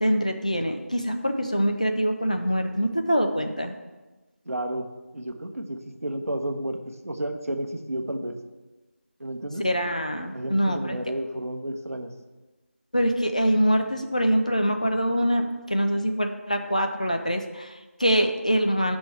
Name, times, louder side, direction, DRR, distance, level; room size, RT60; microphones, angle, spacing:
voice 1, 0.0-3.7 9.6-11.0 12.9-19.0, equal, 30° left, 5 dB, 0.4 m, -24 dB
voice 2, 4.5-4.9 5.1-8.3 9.2-9.6 10.3-12.1, right 1 dB, 75° right, 5 dB, 0.8 m, -31 dB
8.9 x 6.0 x 3.4 m, 1.2 s
figure-of-eight pair, 170°, 8 cm